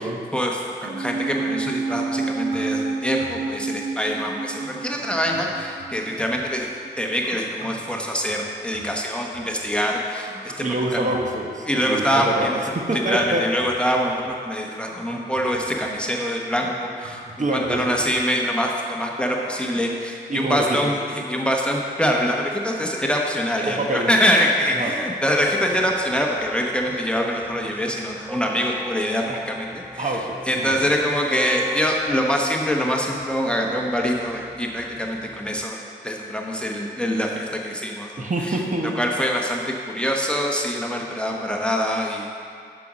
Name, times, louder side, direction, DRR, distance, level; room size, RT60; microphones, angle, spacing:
voice 1, 0.3-6.7 7.0-10.7 10.9-11.1 11.6-12.6 12.9-30.1 30.5-38.6 39.0-42.3, equal, 5° left, -1 dB, 1.1 m, -24 dB
sound 1, 0.8-1.6 1.9-2.3 2.5-2.9 3.2-3.6 4.2-6.6 7.2-9.7 10.3-11.5 12.1-12.3 12.6-14.3 14.9-15.9 16.5-18.3 18.9-19.1 19.4-19.5, equal, 65° right, 1.7 m, -43 dB
sound 2, 0.8-7.4 7.6-7.7, right 4 dB, 85° right, 1.1 m, -30 dB
voice 2, 10.6-12.5 12.9-13.4 14.7-14.8 17.4-18.0 20.3-20.9 23.7-24.1 24.8-25.0 29.3-29.4 30.0-30.9 38.2-39.0, right 1 dB, 40° right, 0 dB, 1.1 m, -26 dB
sound 3, 25.2-35.6, left 1 dB, 10° right, 0.4 m, -38 dB
6.8 x 6.1 x 5.1 m, 2.4 s
cardioid pair, 45°, 19 cm